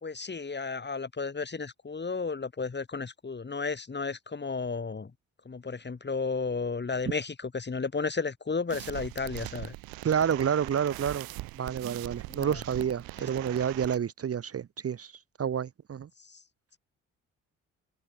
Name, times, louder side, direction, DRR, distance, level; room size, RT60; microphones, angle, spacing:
voice 1, 0.0-5.1 5.4-9.7 12.3-12.6 13.2-13.3 16.2-16.4, left 4 dB, 30° left, 2.4 m, -33 dB
sound 1, 8.7-14.0, right 19 dB, 70° right, 2.1 m, -41 dB
voice 2, 10.0-11.3 11.5-15.1 15.4-16.1, right 8 dB, 40° right, 1.0 m, -29 dB
hypercardioid pair, 45°, 37 cm